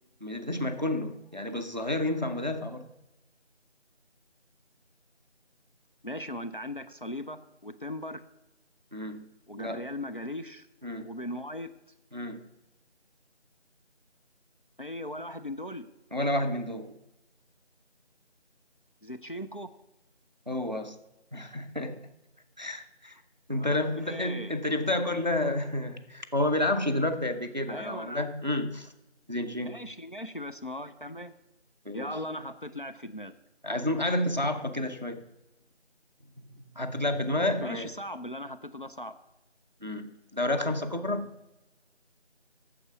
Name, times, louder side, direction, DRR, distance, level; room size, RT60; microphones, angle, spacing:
voice 1, 0.2-2.9 8.9-9.3 9.6-9.8 10.8-11.1 12.1-12.4 16.1-16.9 20.5-21.0 21.3-22.0 22.6-23.2 23.5-28.9 29.3-29.8 31.9-32.1 33.6-35.2 36.4-36.5 36.8-37.9 39.8-41.4, left 1 dB, 40° right, 0.6 m, -30 dB
voice 2, 6.0-8.2 9.5-10.7 11.0-11.7 14.8-15.9 19.0-19.7 23.5-23.8 24.1-24.6 27.7-28.3 29.6-31.3 31.9-33.3 37.6-39.1, left 1 dB, 50° left, 0.5 m, -38 dB
8.7 x 7.3 x 6.0 m
figure-of-eight pair, 175°, 35 cm